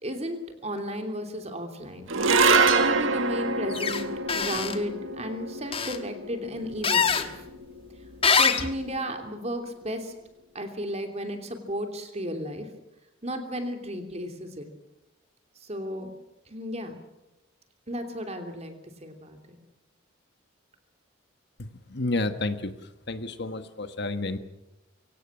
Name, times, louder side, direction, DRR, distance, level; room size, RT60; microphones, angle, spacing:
voice 1, 0.0-2.1 2.4-4.1 4.3-7.3 8.4-10.1 10.5-12.7 13.2-14.7 15.6-16.1 16.5-17.0 17.9-18.7 19.0-19.4, equal, 30° right, 6 dB, 3.0 m, -34 dB
sound 1, 2.1-8.6, right 3 dB, 75° right, 1.7 m, -26 dB
sound 2, 3.7-4.0 4.3-4.8 5.7-6.0 6.8-7.3 8.2-8.7, left 6 dB, 30° left, 1.4 m, -23 dB
voice 2, 21.9-22.7 23.1-24.4, left 2 dB, 55° left, 10 dB, 1.4 m, -30 dB
24.0 x 17.0 x 8.8 m, 0.96 s
head